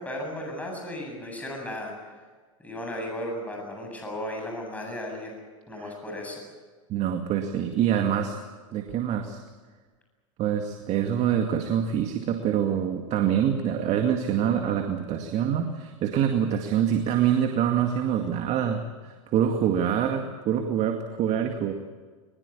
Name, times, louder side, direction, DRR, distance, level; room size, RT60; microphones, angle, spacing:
voice 1, 0.0-1.9 2.6-5.4 5.7-6.4, left 1 dB, 10° left, 1 dB, 8.0 m, -35 dB
voice 2, 6.9-8.4 8.7-9.4 10.4-18.8 19.3-21.7, right 9 dB, 40° right, 5 dB, 2.2 m, -25 dB
22.0 x 21.0 x 8.6 m, 1.4 s
hypercardioid pair, 105°, 17 cm